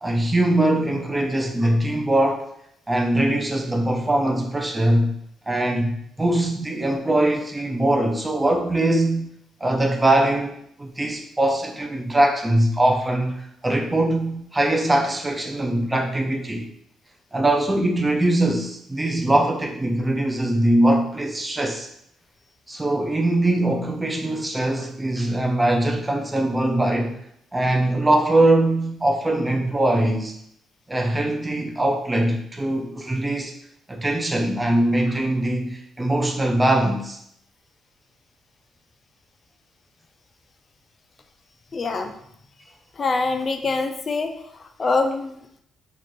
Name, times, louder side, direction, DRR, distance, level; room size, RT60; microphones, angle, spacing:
voice 1, 0.0-2.5 2.9-5.1 5.5-9.3 9.6-13.4 13.6-16.7 17.3-21.9 22.7-27.1 27.5-30.3 30.9-33.5 33.9-37.2, right 1 dB, 15° right, 1 dB, 0.5 m, -22 dB
voice 2, 41.7-42.1 43.0-44.3 44.8-45.3, left 3 dB, 40° left, 6 dB, 0.5 m, -24 dB
3.0 x 2.4 x 4.3 m, 0.71 s
cardioid pair, 90°, 0 cm